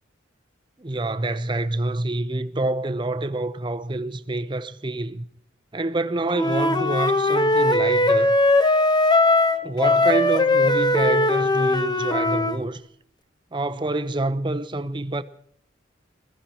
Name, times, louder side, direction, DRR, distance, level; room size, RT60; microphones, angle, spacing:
voice 1, 0.8-5.2 5.7-8.4 9.6-12.8 13.5-15.2, right 2 dB, 25° right, 0.7 m, -27 dB
Wind instrument woodwind instrument, 6.3-12.6, left 2 dB, 25° left, 0.9 m, -19 dB
21.0 x 14.5 x 4.4 m
head